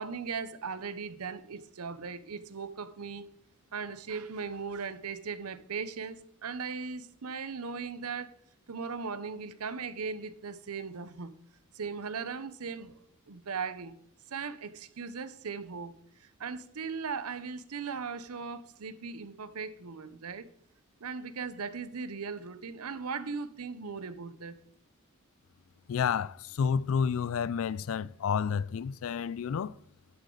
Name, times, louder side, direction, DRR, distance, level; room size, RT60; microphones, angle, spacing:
voice 1, 0.0-3.3 3.7-8.3 8.7-11.3 11.7-13.0 13.3-13.9 14.3-15.9 16.2-20.5 21.0-24.6, right 5 dB, 80° right, 0.7 m, -38 dB
voice 2, 25.9-29.7, left 6 dB, 65° left, 0.3 m, -30 dB
10.5 x 8.3 x 3.8 m
head